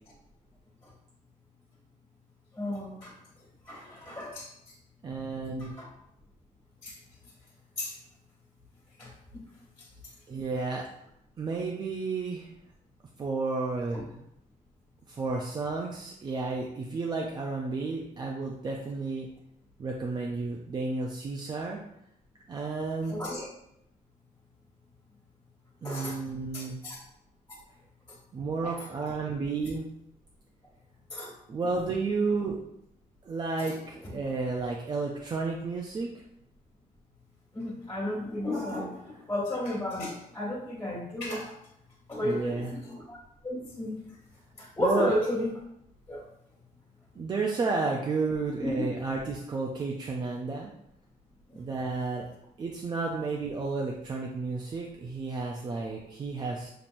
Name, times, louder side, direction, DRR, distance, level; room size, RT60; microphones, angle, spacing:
voice 1, 2.5-3.1 3.7-4.5 5.6-5.9 6.8-6.9 7.8-7.9 9.0-9.4 23.1-23.5 25.8-26.2 26.5-26.9 28.6-28.7 31.1-31.3 37.5-41.5 42.1-43.2 43.4-44.0 44.6-45.5 46.1-46.2 48.8-48.9, left 1 dB, 20° left, -7 dB, 1.7 m, -33 dB
voice 2, 5.0-5.7 10.3-10.8 11.4-12.5 13.2-14.1 15.1-19.3 19.8-21.8 22.5-23.2 25.8-26.8 28.3-29.9 31.5-32.6 33.2-36.1 42.2-42.7 44.8-45.1 47.1-50.7 51.6-52.3 52.6-56.7, right 3 dB, 30° right, -1 dB, 0.4 m, -32 dB
7.0 x 2.9 x 2.5 m, 0.78 s
cardioid pair, 170°, 15 cm